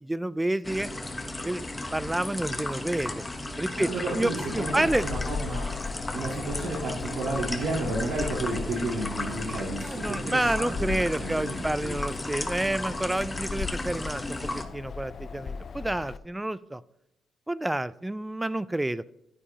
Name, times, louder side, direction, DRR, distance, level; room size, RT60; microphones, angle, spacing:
voice 1, 0.0-0.9 1.4-3.2 3.6-5.0 9.8-16.8 17.5-19.0, right 1 dB, 10° right, 18 dB, 0.3 m, -29 dB
sound 1, 0.6-14.7, left 2 dB, 15° left, 1.1 m, -35 dB
voice 2, 3.7-5.7 6.1-12.0, right 2 dB, 65° right, -7 dB, 3.6 m, -32 dB
Wind, 4.5-16.2, left 5 dB, 50° left, 0.5 m, -37 dB
10.0 x 9.8 x 2.8 m, 0.86 s
cardioid pair, 90°, 0 cm